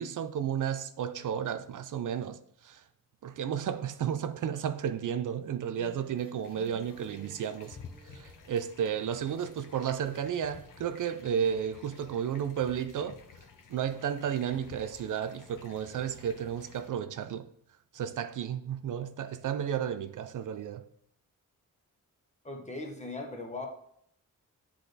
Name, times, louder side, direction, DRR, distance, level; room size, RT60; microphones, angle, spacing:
voice 1, 0.0-2.8 3.2-7.8 8.1-13.2 13.7-17.5 17.9-20.8, right 8 dB, 65° right, 0.4 m, -33 dB
sound 1, 5.4-8.6 9.1-10.3 10.6-10.7, right 3 dB, 15° right, 0.8 m, -55 dB
sound 2, 6.4-16.9, left 5 dB, 70° left, 0.8 m, -53 dB
voice 2, 22.4-23.7, left 2 dB, 20° left, 1.0 m, -39 dB
9.8 x 3.4 x 4.0 m
wide cardioid pair, 175°, 33 cm